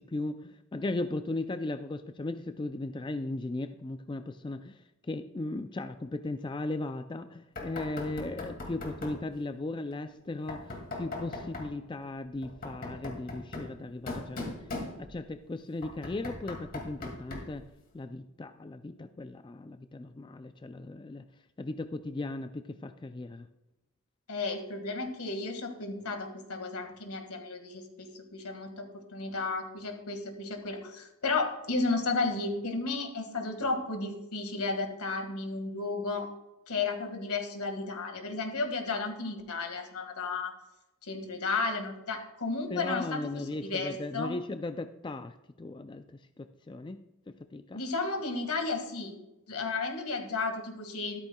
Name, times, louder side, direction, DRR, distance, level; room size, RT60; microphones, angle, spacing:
voice 1, 0.0-14.6 15.0-17.6 17.9-21.2 21.6-23.5 42.7-47.0 47.3-47.8, left 2 dB, 20° left, 9 dB, 0.3 m, -37 dB
Knock, 7.6-9.3 10.5-11.8 12.4-15.3 15.8-17.6, left 2 dB, 40° left, 2.2 m, -40 dB
voice 2, 24.3-36.3 36.7-40.6 41.0-44.3 47.7-49.2 49.5-51.2, left 3 dB, 85° left, 5 dB, 1.8 m, -33 dB
13.5 x 13.0 x 2.3 m, 0.93 s
head